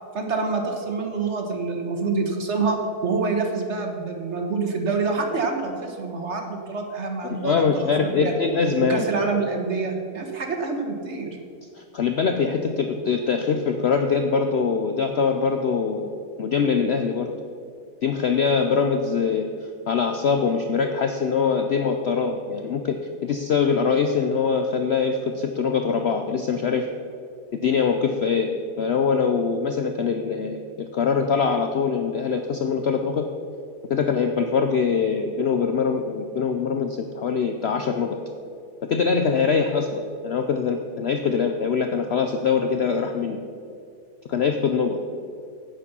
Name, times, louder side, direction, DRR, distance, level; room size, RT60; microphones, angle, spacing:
voice 1, 0.1-2.8 3.0-8.3 8.8-11.4, right 4 dB, 50° right, 3 dB, 1.3 m, -26 dB
voice 2, 7.2-9.0 11.8-16.1 16.4-17.3 18.0-26.9 27.5-33.3 33.9-38.2 38.9-43.4 44.3-45.0, left 5 dB, 65° left, 6 dB, 0.6 m, -23 dB
10.5 x 8.4 x 5.5 m, 2.4 s
omnidirectional pair, 1.7 m